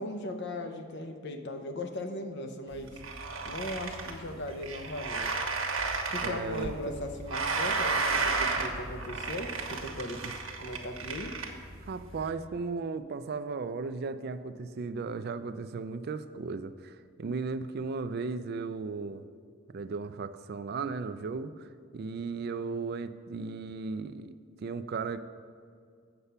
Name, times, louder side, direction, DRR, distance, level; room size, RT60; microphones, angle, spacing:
voice 1, 0.0-3.0 3.4-5.3 6.1-10.2 10.6-11.3, left 1 dB, 55° left, 6 dB, 0.8 m, -38 dB
sound 1, 2.7-12.3, right 4 dB, 80° right, 1.2 m, -33 dB
voice 2, 6.2-6.9 10.2-10.3 11.9-19.2 19.7-21.7 21.9-25.2, right 4 dB, 50° right, 12 dB, 0.4 m, -36 dB
8.1 x 6.8 x 5.5 m, 2.2 s
head